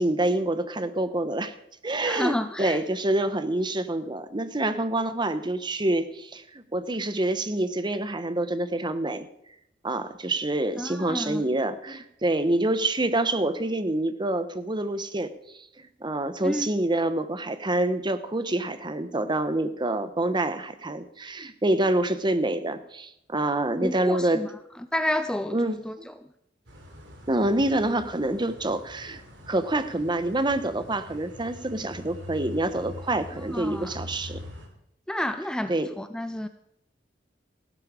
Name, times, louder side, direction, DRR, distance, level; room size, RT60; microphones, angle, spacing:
voice 1, 0.0-1.5 1.8-9.3 9.8-15.3 16.0-24.4 25.5-26.1 27.3-29.2 29.5-34.4 35.7-35.9, right 1 dB, 25° right, 11 dB, 0.9 m, -27 dB
voice 2, 2.0-2.8 10.8-11.4 16.4-16.7 23.8-24.5 24.9-25.9 33.5-33.9 35.1-35.7 36.0-36.5, left 1 dB, 5° left, 9 dB, 0.4 m, -29 dB
sound 1, 26.7-34.7, left 1 dB, 85° right, 3.2 m, -43 dB
15.5 x 12.0 x 5.0 m, 0.78 s
head